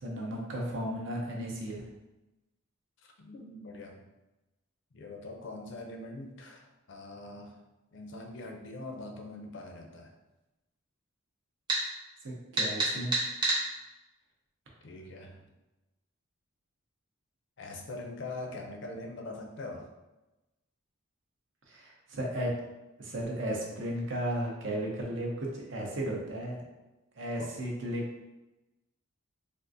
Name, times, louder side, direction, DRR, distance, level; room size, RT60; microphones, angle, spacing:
voice 1, 0.0-1.8 12.2-13.1 21.7-22.5 23.0-26.6 27.2-28.0, right 1 dB, 60° right, -1 dB, 0.7 m, -34 dB
voice 2, 3.0-4.0 4.9-7.6 7.9-10.1 14.8-15.4 17.6-19.9 27.4-27.5, left 2 dB, 55° left, 2 dB, 0.5 m, -43 dB
sound 1, 11.7-11.8 12.6-13.6, right 2 dB, 20° right, 0.8 m, -27 dB
3.6 x 2.4 x 2.5 m, 1.0 s
head